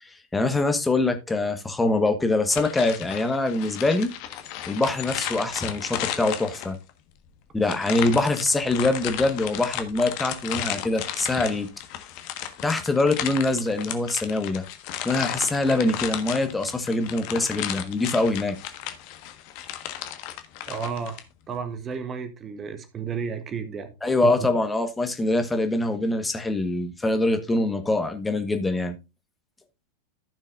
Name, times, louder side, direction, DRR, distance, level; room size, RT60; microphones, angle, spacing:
voice 1, 0.0-4.1 4.7-6.8 7.5-11.7 12.6-14.6 15.0-18.6 24.0-29.0, left 2 dB, 10° left, 1.4 m, -24 dB
sound 1, 2.5-6.9 7.6-21.2, left 11 dB, 45° left, 1.4 m, -34 dB
voice 2, 20.7-21.2 21.5-23.9 24.2-24.3, right 6 dB, 25° right, 1.0 m, -32 dB
15.0 x 6.3 x 2.5 m
figure-of-eight pair, 90°, 0 cm